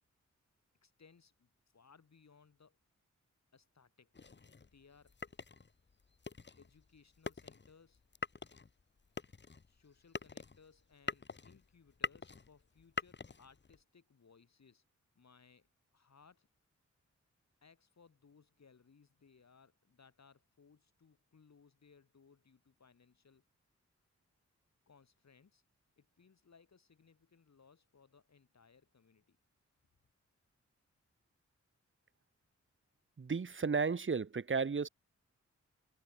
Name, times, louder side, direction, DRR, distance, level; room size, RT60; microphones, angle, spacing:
voice 1, 0.8-2.8 3.5-4.1 4.7-5.2 6.6-8.0 9.7-14.8 15.1-15.7 15.9-16.5 17.6-23.4 24.9-25.6 26.0-29.4, left 5 dB, 65° left, 6.1 m, -65 dB
sound 1, 4.1-13.8, left 4 dB, 35° left, 1.3 m, -45 dB
voice 2, 33.2-34.9, right 5 dB, 40° right, 1.2 m, -33 dB
cardioid pair, 50°, 30 cm